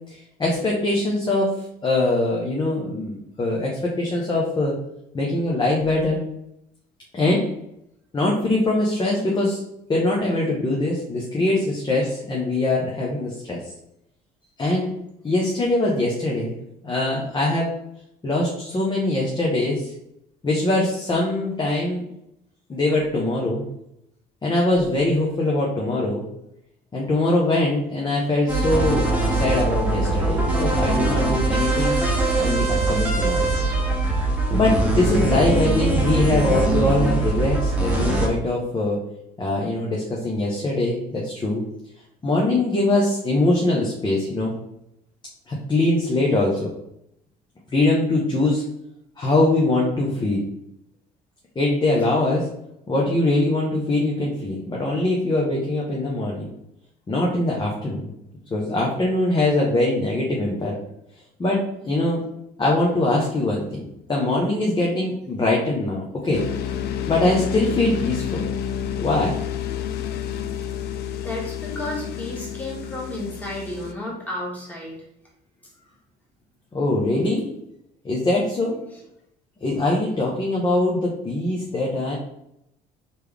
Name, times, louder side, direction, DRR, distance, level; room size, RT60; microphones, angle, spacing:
voice 1, 0.1-1.5 1.8-4.8 5.1-6.2 7.1-7.4 8.1-9.6 9.9-13.6 14.6-14.9 15.2-16.5 16.8-17.7 18.2-19.9 20.4-22.0 22.7-23.6 24.4-26.2 26.9-32.0 32.4-33.5 34.5-39.0 39.4-41.6 42.2-44.5 45.5-46.7 47.7-48.6 49.2-50.4 51.5-52.5 52.9-56.5 57.1-58.0 58.5-60.8 61.4-62.2 62.6-63.8 64.1-66.4 67.1-68.4 69.0-69.3 76.7-77.5 78.0-78.8 79.6-82.2, left 2 dB, 25° left, -3 dB, 1.0 m, -22 dB
sound 1, 28.5-38.3, right 2 dB, 10° right, 1.1 m, -22 dB
sound 2, 66.3-73.9, left 9 dB, 70° left, 0.4 m, -29 dB
voice 2, 71.2-75.0 78.9-79.0 80.6-80.8, left 1 dB, 10° left, -4 dB, 1.8 m, -33 dB
4.3 x 3.5 x 3.4 m, 0.79 s
cardioid pair, 110°, 17 cm